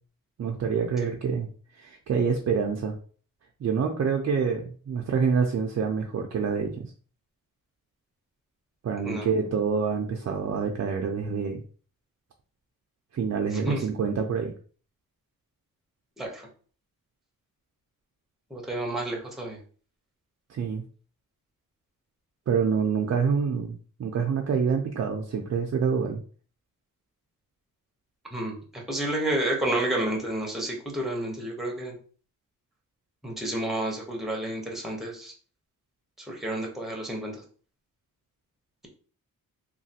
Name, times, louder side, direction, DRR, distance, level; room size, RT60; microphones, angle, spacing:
voice 1, 0.4-1.5 1.8-3.0 3.6-6.9 8.8-11.6 13.1-14.5 20.5-20.8 22.5-26.2, right 6 dB, 45° right, 2 dB, 0.4 m, -27 dB
voice 2, 9.0-9.3 13.5-13.8 16.2-16.5 18.5-19.6 28.3-32.0 33.2-35.3 36.2-37.4, right 1 dB, ahead, 0 dB, 0.8 m, -30 dB
3.1 x 2.3 x 2.7 m, 0.42 s
wide cardioid pair, 115°, 35 cm